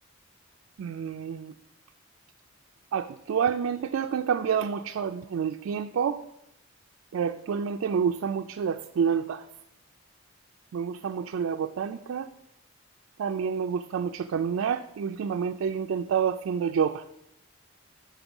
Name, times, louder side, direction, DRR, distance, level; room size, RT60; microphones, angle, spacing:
voice 1, 0.8-1.5 2.9-6.2 7.1-9.4 10.7-12.3 13.2-17.0, right 7 dB, 85° right, 6 dB, 0.3 m, -28 dB
7.0 x 5.7 x 5.3 m, 0.83 s
head